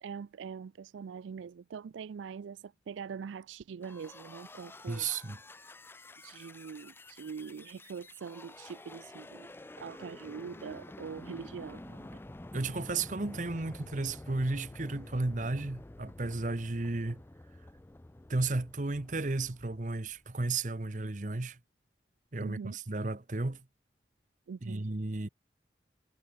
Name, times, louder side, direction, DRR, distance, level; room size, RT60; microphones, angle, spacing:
voice 1, 0.0-5.1 6.2-9.5 9.8-12.2 22.4-22.8 24.5-24.9, right 6 dB, 90° right, 0.4 m, -43 dB
sound 1, 3.8-20.4, left 1 dB, 10° left, 0.4 m, -49 dB
voice 2, 4.9-5.4 12.5-17.2 18.3-21.6 22.3-23.6 24.6-25.3, right 3 dB, 40° right, 0.9 m, -33 dB
head